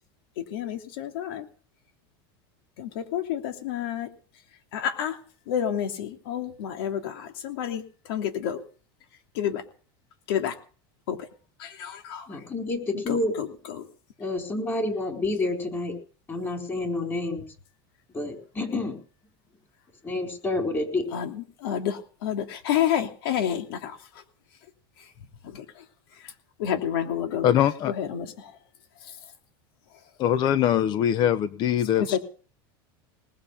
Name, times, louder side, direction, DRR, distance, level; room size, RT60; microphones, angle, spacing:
voice 1, 0.4-1.5 2.8-4.1 4.7-5.2 5.5-8.6 9.3-9.6 10.3-10.5 11.1-11.3 11.6-12.3 13.1-13.9 21.1-24.2 25.0-25.1 25.4-25.8 26.1-26.3 26.6-27.5 27.9-28.6 29.0-29.2 32.0-32.2, left 9 dB, 75° left, 4 dB, 2.9 m, -30 dB
voice 2, 12.3-13.4 14.2-16.0 16.3-17.4 18.1-19.0 20.0-21.1, left 2 dB, 20° left, 2 dB, 4.5 m, -29 dB
voice 3, 27.4-27.9 30.2-32.2, left 10 dB, 35° left, 14 dB, 0.7 m, -22 dB
19.5 x 7.1 x 8.4 m, 0.41 s
supercardioid pair, 145°, 12 cm